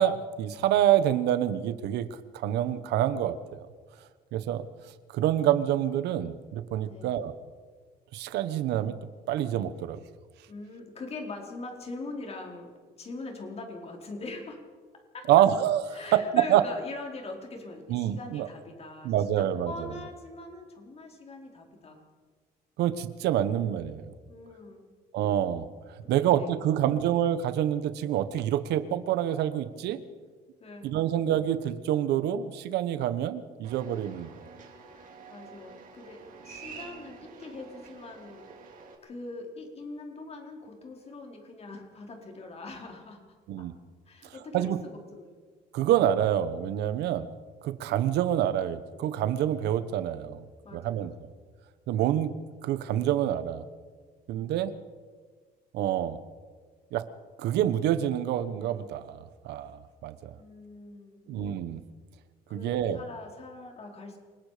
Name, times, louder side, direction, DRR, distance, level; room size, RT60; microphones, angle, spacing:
voice 1, 0.0-2.1 2.3-3.4 4.3-4.6 5.1-7.3 8.1-9.0 9.3-10.0 15.3-16.6 17.9-18.5 19.0-19.7 22.8-24.1 25.1-25.7 26.1-30.0 30.8-34.3 43.5-43.7 44.5-44.8 45.7-47.3 47.6-50.4 50.7-51.1 51.9-52.3 52.6-53.6 54.3-54.7 55.7-56.2 56.9-57.1 57.4-59.2 59.4-60.3 61.3-61.8 62.5-63.0, right 11 dB, 80° right, 13 dB, 1.2 m, -27 dB
voice 2, 10.5-15.3 15.9-22.0 24.3-24.9 26.0-27.0 30.6-30.9 34.9-38.5 39.0-43.7 44.1-45.4 50.6-51.1 54.3-54.6 60.3-61.4 62.5-64.2, left 3 dB, 35° left, 2 dB, 4.5 m, -43 dB
sound 1, 33.6-38.9, right 5 dB, 55° right, 3.9 m, -48 dB
27.5 x 19.0 x 5.1 m, 1.5 s
cardioid pair, 110°, 17 cm